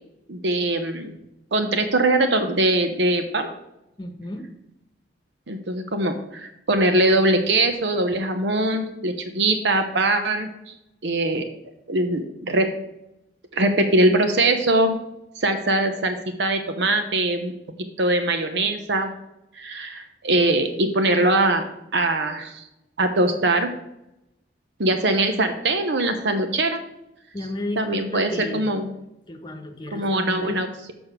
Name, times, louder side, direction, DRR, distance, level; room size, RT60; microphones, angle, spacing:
voice 1, 0.3-1.2 1.5-3.5 5.5-10.5 11.0-11.5 11.9-12.7 13.5-15.0 15.4-17.5 18.0-19.1 19.6-21.7 21.9-22.6 23.0-23.7 24.8-26.8 27.8-28.9 29.9-30.9, right 2 dB, 80° right, 6 dB, 0.8 m, -22 dB
voice 2, 4.0-4.5 27.3-28.7 29.3-30.6, left 1 dB, 25° left, 4 dB, 1.1 m, -32 dB
6.8 x 6.2 x 6.1 m, 0.86 s
head